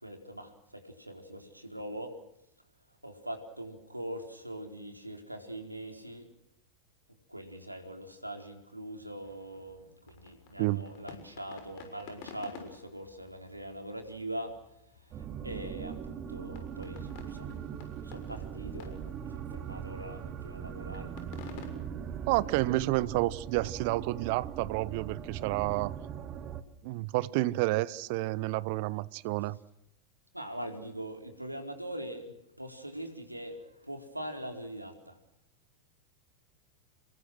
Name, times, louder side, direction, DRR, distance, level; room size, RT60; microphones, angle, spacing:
voice 1, 0.0-2.1 3.0-6.3 7.3-14.5 15.1-21.1 30.3-35.2, right 1 dB, 85° right, 4.5 m, -42 dB
sound 1, 9.2-21.7, left 6 dB, 45° left, 6.6 m, -53 dB
sound 2, 15.1-26.6, right 8 dB, 30° right, 2.1 m, -40 dB
voice 2, 22.3-25.9 26.8-29.6, right 19 dB, 45° right, 1.1 m, -30 dB
29.0 x 23.0 x 6.4 m
figure-of-eight pair, 90°, 0 cm